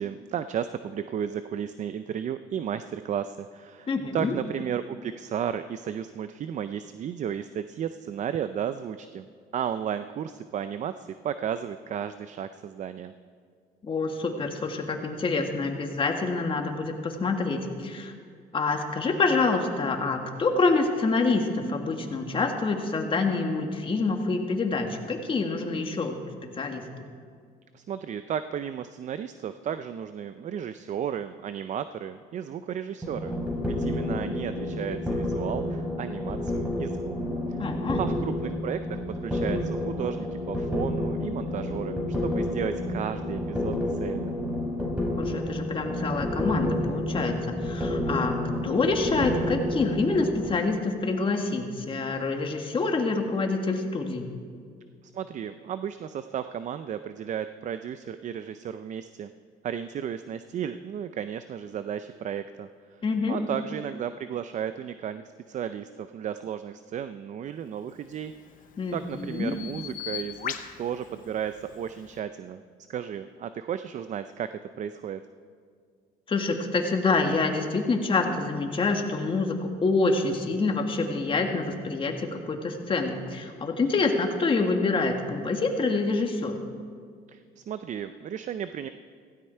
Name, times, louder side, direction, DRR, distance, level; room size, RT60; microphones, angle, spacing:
voice 1, 0.0-9.3 9.5-13.1 27.7-33.3 33.6-37.1 38.0-44.4 55.1-59.3 59.6-63.0 63.3-68.3 68.9-72.6 72.9-74.5 74.8-75.2 87.3-88.9, right 9 dB, 45° right, 11 dB, 0.5 m, -34 dB
voice 2, 3.9-4.3 13.8-18.1 18.5-26.8 37.6-38.0 45.2-48.4 48.6-54.3 63.0-63.4 68.8-69.5 76.3-79.6 79.8-86.6, left 3 dB, 30° left, 3 dB, 1.8 m, -27 dB
sound 1, 33.0-50.5, left 1 dB, 10° right, 3.9 m, -30 dB
Bird vocalization bird call bird song, 68.0-72.2, left 9 dB, 55° left, 0.9 m, -40 dB
16.0 x 16.0 x 4.5 m, 2.1 s
cardioid pair, 110°, 17 cm